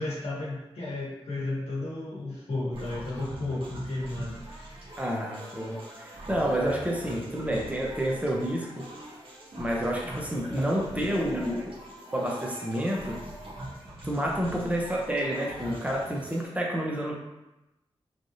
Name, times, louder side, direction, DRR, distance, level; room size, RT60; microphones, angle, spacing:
voice 1, 0.0-4.9, left 2 dB, 85° left, -6 dB, 1.0 m, -34 dB
sound 1, 2.7-16.5, right 1 dB, 60° right, 1.0 m, -42 dB
voice 2, 5.0-8.9 9.6-11.7 12.1-13.2 14.0-17.2, equal, 15° right, -2 dB, 0.8 m, -29 dB
3.3 x 2.4 x 2.7 m, 0.97 s
cardioid pair, 50°, 10 cm